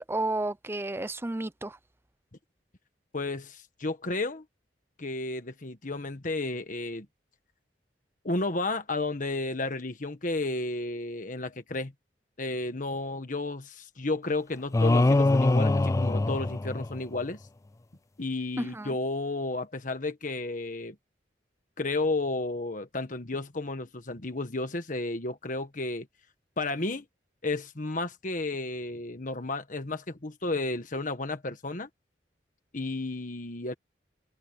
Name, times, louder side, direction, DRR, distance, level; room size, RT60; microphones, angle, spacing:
voice 1, 0.0-1.8 18.6-19.0, right 2 dB, 15° right, 0.6 m, -32 dB
voice 2, 3.1-4.4 5.0-7.1 8.2-11.9 12.4-17.4 18.2-20.9 21.8-26.1 26.6-27.0 27.4-31.9 32.7-33.7, left 2 dB, 45° left, 1.5 m, -32 dB
sound 1, 14.7-17.2, left 2 dB, 20° left, 0.3 m, -23 dB
head